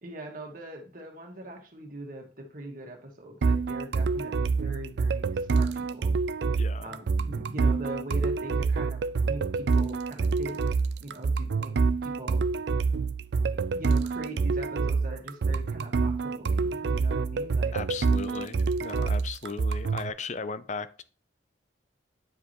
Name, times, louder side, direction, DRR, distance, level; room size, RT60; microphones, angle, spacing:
voice 1, 0.0-6.2 6.8-11.7 12.0-12.4 13.5-17.8, right 1 dB, 50° right, 2 dB, 1.8 m, -41 dB
sound 1, 3.4-20.1, right 4 dB, 65° right, 0.3 m, -27 dB
voice 2, 6.6-7.0 17.7-21.0, left 4 dB, 40° left, 14 dB, 0.5 m, -36 dB
9.3 x 4.9 x 3.0 m, 0.36 s
head